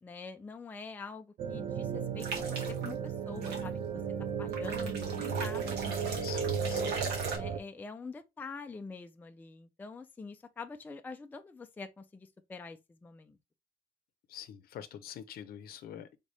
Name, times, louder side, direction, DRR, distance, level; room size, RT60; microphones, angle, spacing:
voice 1, 0.0-4.0 4.4-6.3 7.3-13.4, left 4 dB, 10° left, 0.4 m, -45 dB
sound 1, 1.4-7.6, right 6 dB, 55° right, 0.6 m, -35 dB
sound 2, 2.2-2.9 3.4-3.6 4.5-7.4, right 4 dB, 80° right, 1.6 m, -39 dB
voice 2, 6.2-7.0 14.3-16.2, left 9 dB, 65° left, 0.7 m, -45 dB
4.0 x 3.6 x 3.3 m
cardioid pair, 150°, 17 cm